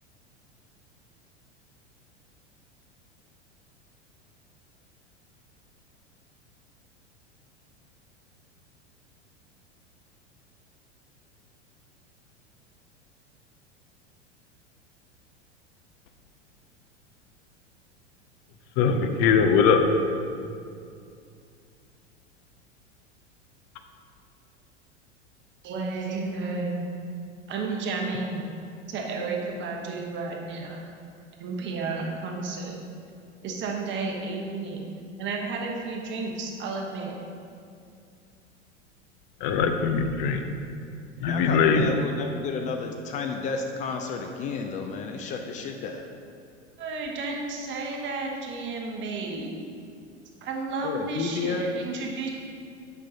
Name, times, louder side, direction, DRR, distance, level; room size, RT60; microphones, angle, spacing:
voice 1, 18.8-19.8 39.4-40.4 41.2-41.9, left 6 dB, 45° left, 6 dB, 0.7 m, -21 dB
voice 2, 25.6-26.7 27.5-28.4 28.9-30.8 31.4-32.8 33.4-34.8 35.2-37.1 46.8-49.6 50.4-52.4, right 3 dB, 30° right, 0 dB, 1.1 m, -32 dB
voice 3, 41.2-46.1 50.8-51.7, left 4 dB, 20° left, 4 dB, 0.3 m, -31 dB
8.7 x 5.6 x 2.8 m, 2.4 s
figure-of-eight pair, 90°, 36 cm